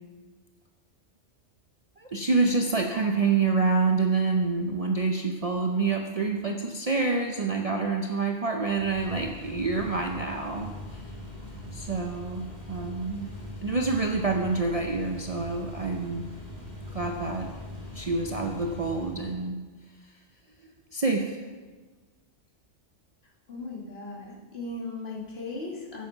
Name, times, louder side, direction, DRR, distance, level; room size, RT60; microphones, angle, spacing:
voice 1, 2.0-11.0 11.7-13.3 13.6-16.2 16.9-17.5 17.9-19.6 20.9-21.4, right 4 dB, 40° right, 2 dB, 0.5 m, -27 dB
sound 1, 8.6-19.5, left 1 dB, 40° left, 2.3 m, -41 dB
voice 2, 23.5-26.1, left 2 dB, 55° left, -3 dB, 2.0 m, -37 dB
9.0 x 6.5 x 5.6 m, 1.3 s
omnidirectional pair, 1.2 m